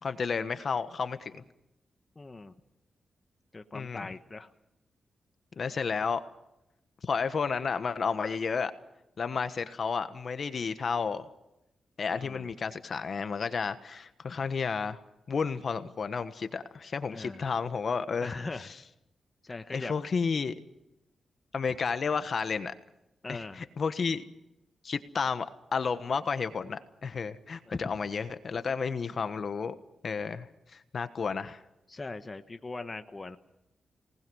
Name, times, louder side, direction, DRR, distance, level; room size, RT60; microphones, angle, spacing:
voice 1, 0.0-1.4 3.7-4.1 5.6-6.2 7.0-8.7 9.2-11.3 12.0-15.0 15.3-18.7 19.7-20.5 21.5-22.7 23.3-24.2 24.8-29.8 30.0-31.6, left 5 dB, 60° left, 10 dB, 1.3 m, -32 dB
voice 2, 2.1-2.5 3.5-4.5 12.1-12.5 17.1-17.5 18.2-18.7 19.4-19.9 23.2-23.6 27.7-27.8 31.9-33.4, left 3 dB, 30° left, 9 dB, 1.2 m, -40 dB
26.0 x 19.5 x 6.3 m, 0.88 s
cardioid pair, 70°, 0 cm